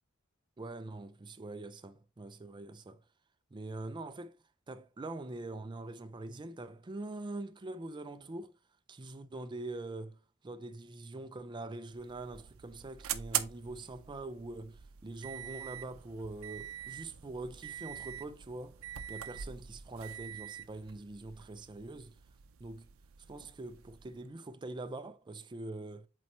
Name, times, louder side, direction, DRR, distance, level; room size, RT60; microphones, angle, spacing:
voice 1, 0.6-3.0 3.5-4.3 4.7-8.5 8.9-10.2 10.4-18.8 19.1-22.2 22.6-22.9 23.3-26.1, right 2 dB, 20° right, 0.4 m, -43 dB
sound 1, 11.8-24.3, right 11 dB, 75° right, 0.5 m, -44 dB
7.6 x 4.2 x 3.0 m
head